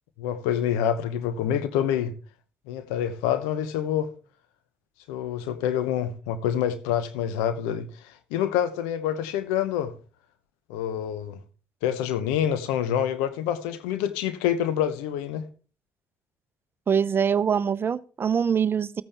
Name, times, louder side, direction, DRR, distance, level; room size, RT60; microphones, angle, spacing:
voice 1, 0.2-2.1 2.7-4.1 5.1-9.9 10.7-11.4 11.8-15.4, left 9 dB, 80° left, 0.9 m, -27 dB
voice 2, 16.9-19.0, right 7 dB, 45° right, 0.6 m, -24 dB
14.0 x 8.9 x 3.4 m
hypercardioid pair, 50°, 6 cm